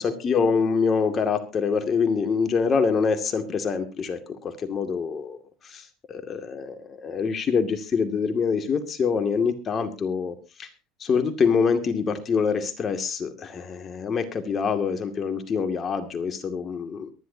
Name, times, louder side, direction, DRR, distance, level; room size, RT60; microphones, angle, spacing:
voice 1, 0.0-5.4 5.6-10.7 11.0-17.1, left 5 dB, 35° left, 7 dB, 2.2 m, -25 dB
23.0 x 10.5 x 2.8 m, 0.30 s
supercardioid pair, 100°, 0 cm